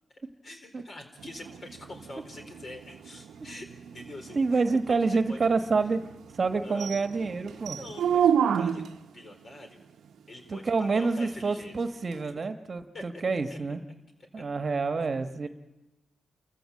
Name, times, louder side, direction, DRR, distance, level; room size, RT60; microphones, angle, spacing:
voice 1, 0.4-3.7 3.9-5.4 6.6-6.9 7.5-8.9 9.1-9.9 10.3-11.9 12.2-12.4 12.9-13.1 13.5-13.6 14.3-14.4 15.0-15.1, left 1 dB, 50° left, 5 dB, 4.4 m, -45 dB
sound 1, 1.2-9.1 12.1-12.2, right 8 dB, 80° right, 0.8 m, -31 dB
voice 2, 4.3-6.0 6.3-7.8 10.5-13.8 14.3-15.5, right 4 dB, 45° right, 8 dB, 1.2 m, -27 dB
29.0 x 14.5 x 7.6 m, 1.1 s
cardioid pair, 70°, 0 cm